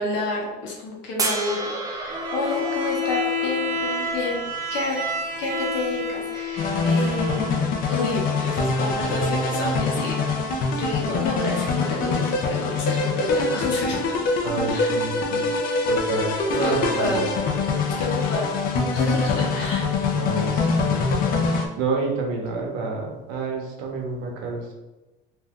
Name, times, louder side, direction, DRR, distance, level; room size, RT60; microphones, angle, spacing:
voice 1, 0.0-4.4 4.7-5.0 5.4-10.2 10.7-14.0 14.7-14.9 16.6-17.3 17.8-18.5 18.9-19.9, left 2 dB, 70° left, -1 dB, 0.9 m, -29 dB
sound 1, 1.2-4.4 6.5-6.6, right 3 dB, 20° right, 0.4 m, -31 dB
Bowed string instrument, 2.1-7.7, left 2 dB, 50° right, 0.8 m, -29 dB
sound 2, 6.6-21.7, left 3 dB, 50° left, 0.5 m, -24 dB
voice 2, 14.4-15.5 15.9-17.3 20.1-21.0 21.8-24.7, right 3 dB, 90° right, 1 dB, 0.8 m, -29 dB
2.7 x 2.3 x 3.5 m, 1.1 s
cardioid pair, 135°, 19 cm